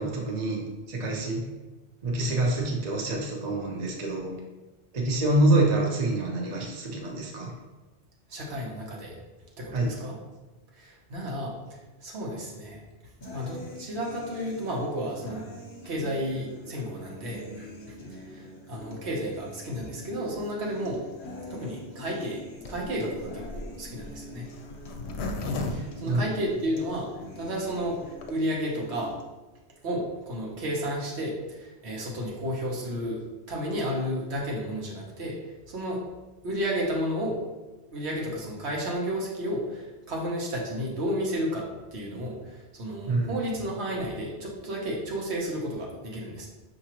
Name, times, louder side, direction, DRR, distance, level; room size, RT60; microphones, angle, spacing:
voice 1, 0.0-1.4 2.0-4.3 4.9-7.5 9.7-9.9 26.1-26.3 43.1-43.4, right 2 dB, 45° right, -1 dB, 0.8 m, -26 dB
voice 2, 8.3-9.2 9.6-10.2 10.7-11.5 12.0-12.8 13.3-15.4 15.8-21.0 21.5-22.4 22.7-24.5 25.7-27.1 27.4-29.1 29.8-33.2 33.5-35.4 35.7-36.0 36.4-37.4 37.9-46.5, equal, 80° right, -2 dB, 1.2 m, -32 dB
sound 1, 13.2-29.2, left 1 dB, 55° left, 1.0 m, -45 dB
Zipper (clothing), 22.6-26.9 27.4-27.5 27.7-27.8 28.0-28.3, left 2 dB, 80° left, 0.8 m, -35 dB
5.7 x 2.8 x 2.9 m, 1.1 s
omnidirectional pair, 1.1 m